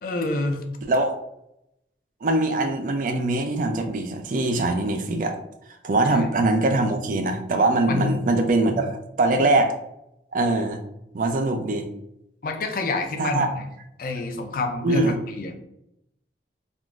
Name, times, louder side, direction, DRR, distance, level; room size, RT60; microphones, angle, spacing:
voice 1, 0.0-0.6 6.1-6.3 7.8-8.2 12.4-13.7 14.0-15.6, left 3 dB, 50° left, 5 dB, 0.4 m, -27 dB
voice 2, 0.9-1.2 2.2-5.4 5.8-9.8 10.3-10.8 11.1-11.9 13.2-13.5 14.8-15.1, right 2 dB, 45° right, 6 dB, 0.4 m, -22 dB
3.6 x 2.4 x 2.3 m, 0.82 s
head